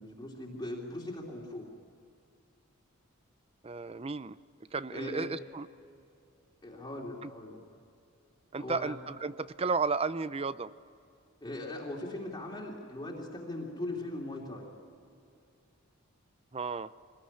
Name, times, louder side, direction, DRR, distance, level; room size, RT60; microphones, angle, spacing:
voice 1, 0.0-1.7 4.9-5.3 6.6-7.6 8.6-9.0 11.4-14.7, left 1 dB, 20° left, -3 dB, 2.9 m, -39 dB
voice 2, 3.6-4.4 4.7-5.7 7.2-7.3 8.5-10.7 16.5-16.9, right 4 dB, 25° right, 15 dB, 0.5 m, -33 dB
24.5 x 20.5 x 10.0 m, 2.5 s
head